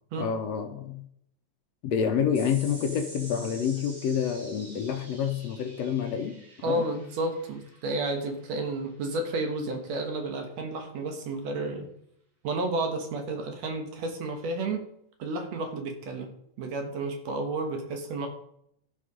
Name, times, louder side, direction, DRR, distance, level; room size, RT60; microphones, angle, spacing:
voice 1, 0.2-1.0 1.8-6.9, left 7 dB, 70° left, 6 dB, 1.9 m, -28 dB
sound 1, 2.3-9.1, right 1 dB, 30° right, 2.4 m, -48 dB
voice 2, 6.6-11.9 12.4-14.8 15.2-16.3 16.6-18.3, right 2 dB, 65° right, 4 dB, 2.5 m, -31 dB
13.0 x 5.8 x 5.1 m, 0.72 s
omnidirectional pair, 3.3 m